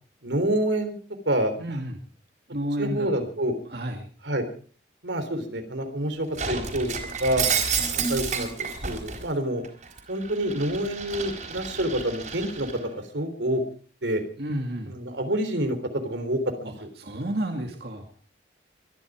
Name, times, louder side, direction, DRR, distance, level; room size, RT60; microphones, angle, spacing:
voice 1, 0.2-0.9 1.3-1.5 2.8-3.5 4.3-4.4 5.0-6.9 7.2-7.4 8.0-9.6 10.1-13.6 14.0-14.2 14.9-15.8 16.0-16.7, right 1 dB, 85° right, 6 dB, 3.6 m, -27 dB
voice 2, 1.6-2.0 2.5-3.3 3.7-4.1 14.4-15.0 16.6-18.1, right 1 dB, 60° right, 3 dB, 2.4 m, -31 dB
Shatter, 6.4-9.2 9.6-12.8, right 6 dB, 45° right, 4.2 m, -30 dB
24.0 x 11.5 x 5.0 m, 0.43 s
head